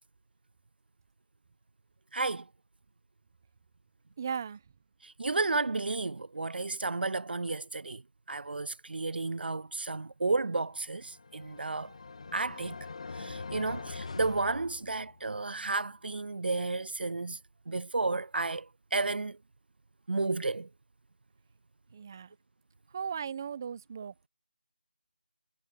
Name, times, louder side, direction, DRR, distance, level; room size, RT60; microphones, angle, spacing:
voice 1, 2.1-2.5 5.0-8.0 8.3-12.0 12.3-12.8 13.1-17.4 17.7-19.4 20.1-20.7, right 3 dB, 75° right, 0.4 m, -32 dB
voice 2, 4.2-4.6 21.9-22.3 22.9-24.3, right 7 dB, 20° right, 1.1 m, -37 dB
sound 1, 11.0-15.4, left 4 dB, 40° left, 2.0 m, -43 dB
figure-of-eight pair, 175°, 5 cm